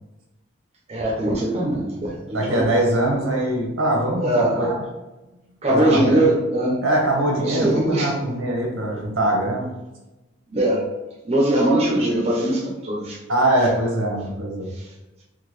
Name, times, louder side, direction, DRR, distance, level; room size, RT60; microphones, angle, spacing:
voice 1, 0.9-2.7 4.2-4.8 5.6-6.8 7.5-8.1 10.5-10.9 11.2-13.2 14.8-14.9, right 1 dB, 30° right, -3 dB, 0.5 m, -21 dB
voice 2, 2.3-4.8 5.7-6.3 6.8-9.7 13.3-14.7, right 1 dB, 85° right, -1 dB, 1.0 m, -22 dB
3.7 x 2.3 x 3.1 m, 1.0 s
head